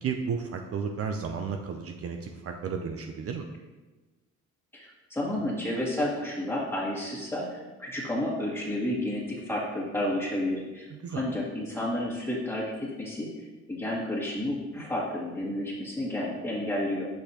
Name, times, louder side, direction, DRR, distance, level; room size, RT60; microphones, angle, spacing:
voice 1, 0.0-3.5 10.9-11.4, right 6 dB, 50° right, 4 dB, 0.5 m, -33 dB
voice 2, 4.7-13.3 13.7-17.1, left 1 dB, 10° left, -5 dB, 2.0 m, -31 dB
6.4 x 5.5 x 2.9 m, 1.2 s
cardioid pair, 90°, 30 cm